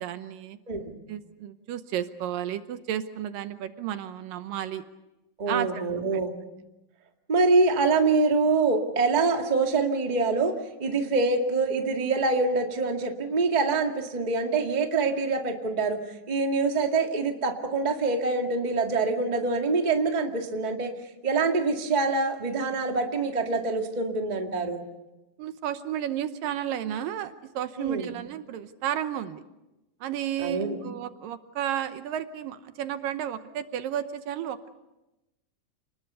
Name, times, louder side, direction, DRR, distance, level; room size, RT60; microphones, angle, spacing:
voice 1, 0.0-0.6 1.1-4.8 5.5-5.8 6.1-6.2 25.4-29.4 30.0-34.7, right 10 dB, 75° right, 10 dB, 2.5 m, -32 dB
voice 2, 5.4-6.3 7.3-10.5 10.8-16.0 16.3-20.9 21.2-24.8 27.8-28.1 30.4-30.8, right 3 dB, 20° right, 3 dB, 1.3 m, -25 dB
29.5 x 20.0 x 6.9 m, 0.97 s
omnidirectional pair, 4.2 m